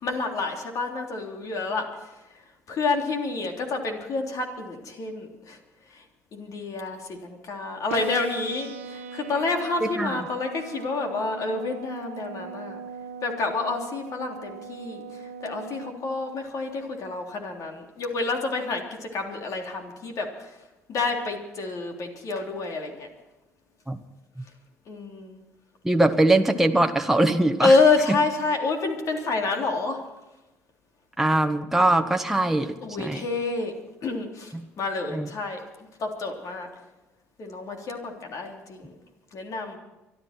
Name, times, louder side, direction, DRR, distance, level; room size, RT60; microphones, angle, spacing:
voice 1, 0.0-2.1 2.7-5.6 5.9-6.0 6.3-12.8 13.2-20.6 20.9-23.1 24.9-25.4 27.6-30.0 32.8-33.7 34.0-35.6 36.0-36.7 37.4-38.9 39.3-39.8, left 3 dB, 55° left, 2 dB, 3.5 m, -28 dB
sound 1, 7.9-15.9, right 5 dB, 85° right, 1.1 m, -40 dB
voice 2, 9.8-10.1 23.9-24.0 25.8-27.7 28.1-28.2 31.2-33.2 35.1-35.3, right 2 dB, 5° right, 5 dB, 1.3 m, -22 dB
25.0 x 12.0 x 4.5 m, 1.0 s
hypercardioid pair, 60°, 7 cm